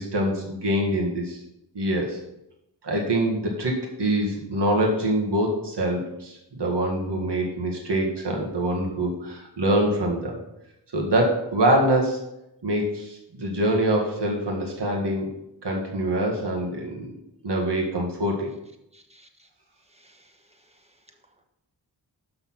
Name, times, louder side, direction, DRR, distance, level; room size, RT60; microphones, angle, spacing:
voice 1, 0.0-1.4 1.7-2.2 2.8-10.4 10.9-12.2 12.6-15.3 15.6-18.5, right 1 dB, 65° right, -1 dB, 1.8 m, -25 dB
voice 2, 18.9-19.5 19.9-20.8, right 1 dB, 15° right, 3 dB, 1.3 m, -58 dB
6.7 x 5.7 x 5.8 m, 0.86 s
wide cardioid pair, 65°, 44 cm